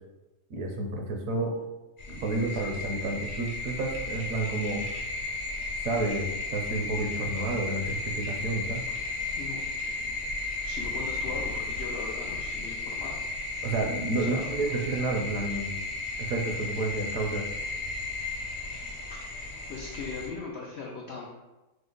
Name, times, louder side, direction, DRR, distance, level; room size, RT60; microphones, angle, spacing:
voice 1, 0.5-1.5 2.2-4.8 5.8-8.8 13.6-15.7 16.3-17.5, right 2 dB, 65° right, 1 dB, 1.0 m, -30 dB
sound 1, 2.0-20.3, left 3 dB, 45° left, 0.7 m, -34 dB
voice 2, 10.6-13.2 14.2-14.5 19.1-19.2 19.7-21.3, left 4 dB, 85° left, -1 dB, 0.5 m, -39 dB
5.1 x 2.1 x 3.7 m, 1.1 s
omnidirectional pair, 1.7 m